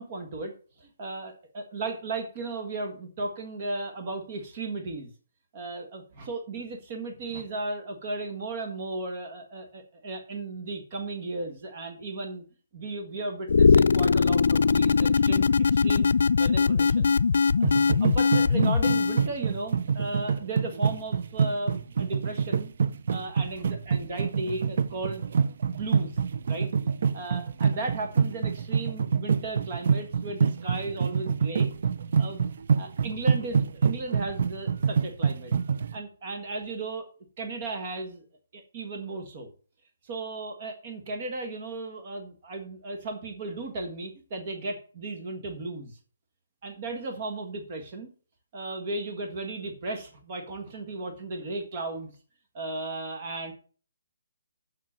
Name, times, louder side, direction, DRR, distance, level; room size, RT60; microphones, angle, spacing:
voice 1, 0.0-5.1 5.5-12.4 12.7-16.1 16.4-17.7 18.0-22.7 23.1-25.2 25.6-26.2 26.5-26.7 27.1-31.7 32.2-35.5 35.9-37.1 37.4-38.2 38.5-39.5 40.0-46.0 46.6-48.1 48.5-52.1 52.5-53.5, right 2 dB, 30° right, 5 dB, 1.6 m, -35 dB
sound 1, 13.5-19.3, left 5 dB, 65° left, 0.4 m, -21 dB
sound 2, 17.6-36.0, right 6 dB, 50° right, 0.5 m, -26 dB
7.5 x 6.0 x 7.4 m, 0.41 s
hypercardioid pair, 170°, 0 cm